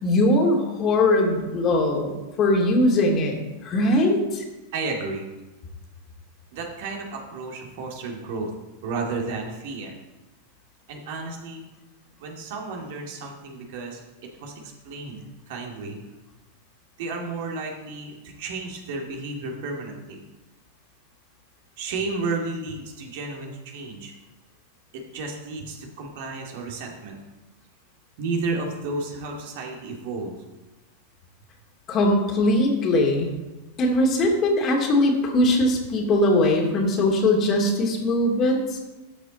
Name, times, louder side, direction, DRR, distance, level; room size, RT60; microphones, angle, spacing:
voice 1, 0.0-4.4 31.9-33.3 33.8-38.8, left 1 dB, 30° left, 1 dB, 2.5 m, -21 dB
voice 2, 4.7-5.3 6.5-8.5 8.8-9.9 10.9-11.7 12.2-14.0 14.4-16.0 17.0-20.2 21.8-24.1 24.9-27.2 28.2-30.3, right 3 dB, 50° right, 1 dB, 2.1 m, -32 dB
13.0 x 7.5 x 4.1 m, 1.1 s
figure-of-eight pair, 90°, 0 cm